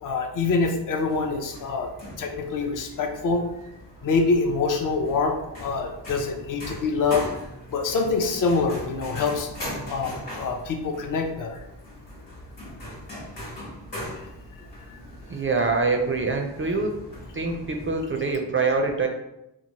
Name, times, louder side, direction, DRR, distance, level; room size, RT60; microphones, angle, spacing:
voice 1, 0.0-1.9 2.2-3.4 4.0-5.3 5.6-7.3 7.7-9.5 9.9-11.6, left 4 dB, 45° left, 4 dB, 0.5 m, -25 dB
sound 1, 1.1-18.4, equal, 85° left, 1.3 m, -40 dB
voice 2, 15.3-16.9 17.3-19.1, right 3 dB, 30° right, 2 dB, 0.4 m, -24 dB
3.0 x 2.2 x 2.8 m, 0.89 s
cardioid pair, 50°, 44 cm